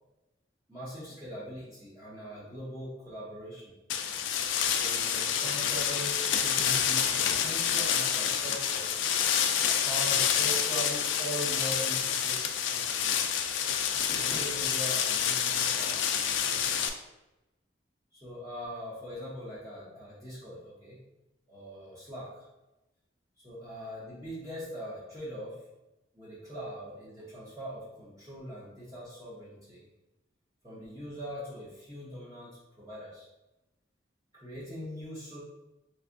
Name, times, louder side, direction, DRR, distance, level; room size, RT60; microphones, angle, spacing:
voice 1, 0.7-3.8 4.8-8.9 9.7-12.4 12.7-13.4 14.1-17.0 18.1-21.0 21.5-22.5 23.4-25.6 26.1-29.8 30.6-33.3 34.3-35.4, equal, 15° right, -9 dB, 0.8 m, -41 dB
sound 1, 3.9-16.9, left 8 dB, 75° left, 0.3 m, -28 dB
3.4 x 3.1 x 2.5 m, 0.98 s
head